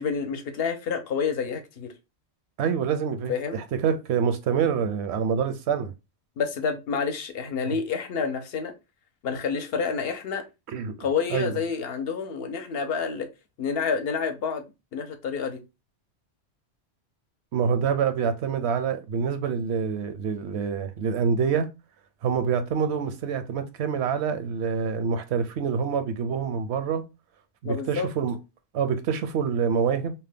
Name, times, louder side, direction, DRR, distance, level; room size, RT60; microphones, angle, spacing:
voice 1, 0.0-1.9 3.3-3.6 6.4-8.7 9.2-10.4 11.0-13.3 13.6-15.6 27.6-28.1, left 6 dB, 70° left, 0.8 m, -29 dB
voice 2, 2.6-5.9 7.7-7.8 10.7-10.9 11.3-11.6 17.5-21.7 22.2-27.0 27.6-28.4 28.7-30.1, right 6 dB, 80° right, 0.8 m, -26 dB
2.8 x 2.1 x 3.2 m
omnidirectional pair, 1.1 m